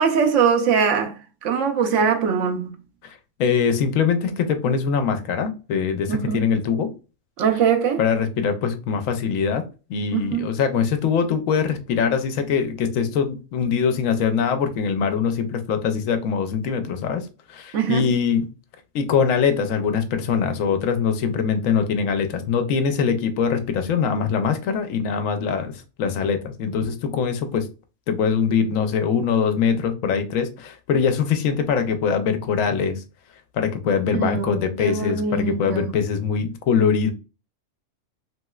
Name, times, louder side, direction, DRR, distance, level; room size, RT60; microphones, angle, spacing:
voice 1, 0.0-2.7 6.1-6.5 7.4-8.0 10.1-10.5 17.7-18.0 34.1-35.9, right 6 dB, 75° right, 0.9 m, -22 dB
voice 2, 3.0-6.9 8.0-9.6 9.9-17.2 17.5-18.4 18.9-25.7 26.0-27.7 28.1-33.0 33.5-37.1, left 6 dB, 80° left, 1.0 m, -22 dB
3.0 x 2.9 x 2.3 m
omnidirectional pair, 1.3 m